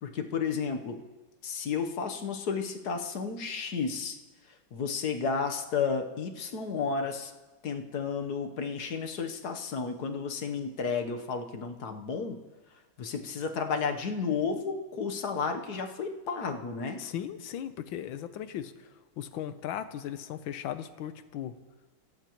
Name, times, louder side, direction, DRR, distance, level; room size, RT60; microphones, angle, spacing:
voice 1, 0.0-1.0 1.4-4.2 4.7-7.3 7.6-12.4 13.0-17.0, left 5 dB, 55° left, 5 dB, 1.5 m, -32 dB
voice 2, 17.0-18.9 19.2-21.5, left 10 dB, 80° left, 11 dB, 1.6 m, -37 dB
26.0 x 17.0 x 3.0 m, 1.2 s
omnidirectional pair, 2.1 m